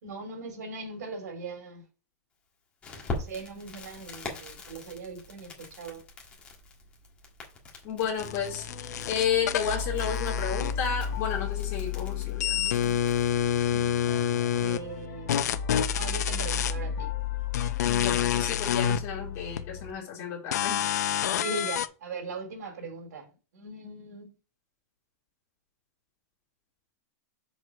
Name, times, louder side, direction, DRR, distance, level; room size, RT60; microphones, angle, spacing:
voice 1, 0.0-1.8 3.0-6.0 14.6-15.3 15.9-17.1 21.4-23.3 23.5-24.3, right 3 dB, 90° right, 2.8 m, -39 dB
Crackle, 2.8-13.3, left 2 dB, 15° left, 1.5 m, -43 dB
voice 2, 7.8-12.9 13.6-14.0 17.9-20.8, left 7 dB, 30° left, 2.7 m, -32 dB
sound 1, 8.1-11.2 11.5-14.8 15.3-16.7 17.5-19.0 19.6-19.7 20.5-21.9, left 9 dB, 80° left, 0.6 m, -28 dB
sound 2, 8.2-19.9, left 7 dB, 55° left, 1.6 m, -34 dB
6.3 x 4.8 x 4.9 m
supercardioid pair, 175°, 9 cm